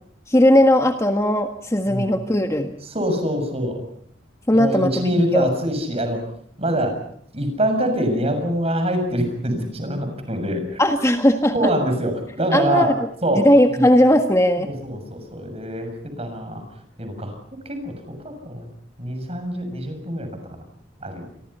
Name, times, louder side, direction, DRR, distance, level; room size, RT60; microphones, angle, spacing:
voice 1, 0.3-2.7 4.5-5.5 10.8-11.5 12.5-13.0 13.3-14.7, left 1 dB, 15° left, 5 dB, 1.6 m, -17 dB
voice 2, 2.8-3.8 4.5-6.2 6.6-7.0 7.3-10.8 11.5-12.9 13.2-13.9 14.6-16.6 17.0-17.4 17.7-18.7 19.0-20.6 21.0-21.3, equal, 30° right, 6 dB, 7.1 m, -25 dB
29.0 x 24.0 x 5.7 m, 0.65 s
head